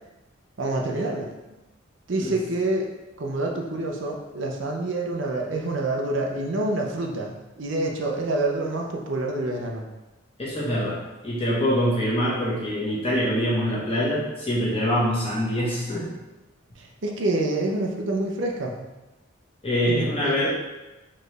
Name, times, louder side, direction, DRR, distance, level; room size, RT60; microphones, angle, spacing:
voice 1, 0.6-1.3 2.1-2.9 3.2-9.8 16.8-18.9 19.9-20.5, right 2 dB, 60° right, 0 dB, 0.6 m, -27 dB
voice 2, 10.4-16.1 19.6-20.5, equal, 30° left, -7 dB, 1.2 m, -24 dB
4.2 x 3.2 x 3.3 m, 1.1 s
head